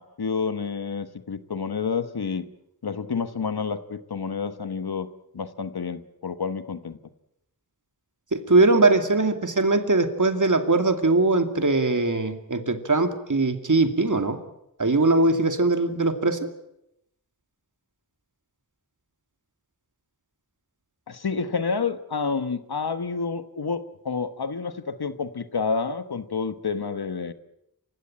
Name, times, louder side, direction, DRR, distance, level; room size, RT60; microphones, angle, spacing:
voice 1, 0.0-2.5 2.8-5.1 5.3-7.0 21.1-27.3, left 5 dB, 90° left, 11 dB, 1.3 m, -29 dB
voice 2, 8.3-14.4 14.8-16.5, right 2 dB, 55° right, 7 dB, 2.4 m, -21 dB
27.5 x 16.0 x 8.9 m, 0.84 s
wide cardioid pair, 70°, 37 cm